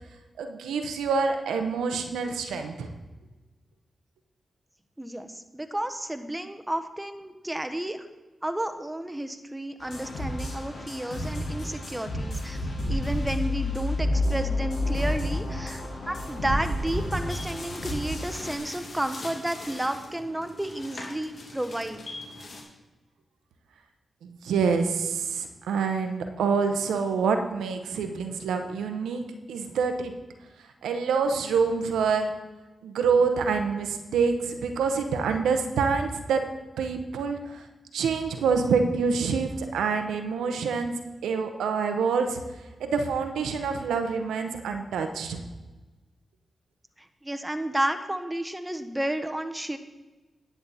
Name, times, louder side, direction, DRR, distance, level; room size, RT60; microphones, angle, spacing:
voice 1, 0.4-2.9 24.2-30.1 30.8-32.3 32.8-36.4 36.8-37.6 37.9-40.9 41.2-42.4 42.8-45.4, right 5 dB, 90° right, 6 dB, 0.9 m, -26 dB
voice 2, 5.0-8.1 8.4-12.6 12.9-22.1 47.0-49.8, right 1 dB, 15° right, 7 dB, 1.1 m, -32 dB
sound 1, 9.8-18.6, left 1 dB, 75° left, 3.7 m, -30 dB
sound 2, 17.3-22.6, left 2 dB, 55° left, 2.5 m, -42 dB
10.5 x 8.2 x 4.2 m, 1.2 s
supercardioid pair, 45°, 0 cm